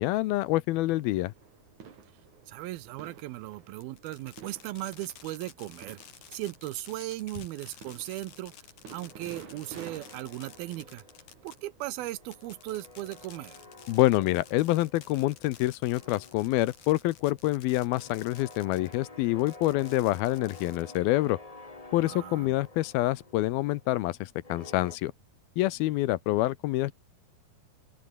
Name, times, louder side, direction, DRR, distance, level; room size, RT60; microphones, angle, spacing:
voice 1, 0.0-1.3 13.9-21.4 21.9-25.1 25.6-26.9, left 17 dB, 80° left, 2.6 m, -27 dB
sound 1, 1.1-14.7 15.2-15.3 16.4-16.8 17.8-17.9, right 7 dB, 50° right, 4.3 m, -53 dB
voice 2, 2.5-6.0 6.3-8.5 8.9-11.0 11.4-13.6 21.9-22.5, right 16 dB, 75° right, 2.7 m, -37 dB
Fireworks, 3.8-19.0 19.4-21.2, left 8 dB, 50° left, 3.3 m, -52 dB
sound 2, 9.1-11.6 11.9-15.5 15.8-25.0, left 2 dB, 30° left, 0.6 m, -50 dB
open air
omnidirectional pair, 4.5 m